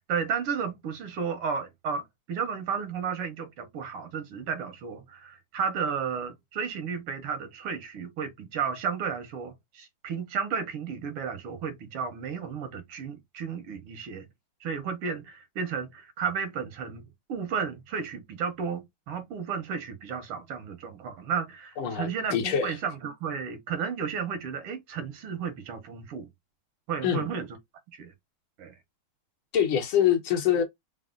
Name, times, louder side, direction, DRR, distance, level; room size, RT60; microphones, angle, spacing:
voice 1, 0.1-14.3 14.6-17.0 17.3-26.3 26.9-27.5 27.9-28.1 28.6-28.7, right 6 dB, 90° right, 1.9 m, -33 dB
voice 2, 21.8-22.8 27.0-27.3 29.5-30.6, left 9 dB, 75° left, 1.9 m, -25 dB
4.7 x 2.1 x 3.7 m
omnidirectional pair, 2.4 m